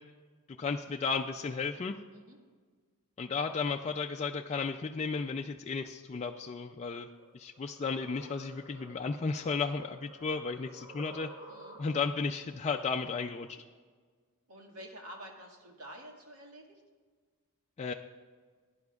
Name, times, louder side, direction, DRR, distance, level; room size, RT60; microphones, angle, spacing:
voice 1, 0.5-2.0 3.2-7.1 7.3-11.3 11.8-13.6 17.8-17.9, left 4 dB, 30° left, 3 dB, 0.3 m, -34 dB
sound 1, 7.2-12.2, right 1 dB, 25° right, 1.9 m, -52 dB
voice 2, 11.5-11.8 14.5-16.8, equal, 80° right, 1 dB, 1.9 m, -49 dB
17.0 x 10.5 x 2.4 m, 1.5 s
head